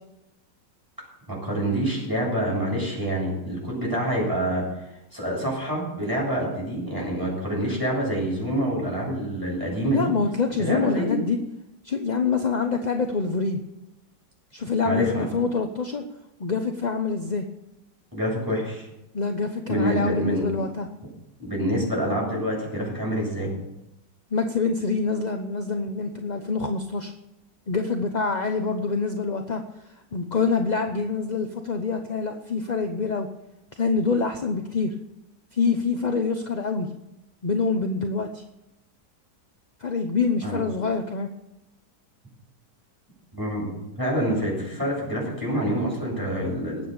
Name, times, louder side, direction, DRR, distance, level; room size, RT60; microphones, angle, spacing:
voice 1, 1.3-4.6 4.9-10.1 10.6-11.2 14.8-15.3 18.1-18.9 19.7-20.4 21.4-23.5 40.4-40.6 43.3-43.7 44.0-46.9, right 1 dB, 10° right, -3 dB, 7.9 m, -26 dB
voice 2, 9.9-11.4 11.8-13.6 14.5-16.0 16.4-17.5 19.1-20.9 24.3-27.1 27.7-29.6 30.1-33.3 33.8-34.9 35.5-36.9 37.4-38.4 39.8-41.3, left 4 dB, 35° left, 5 dB, 0.7 m, -25 dB
19.5 x 8.5 x 6.9 m, 0.91 s
omnidirectional pair, 1.9 m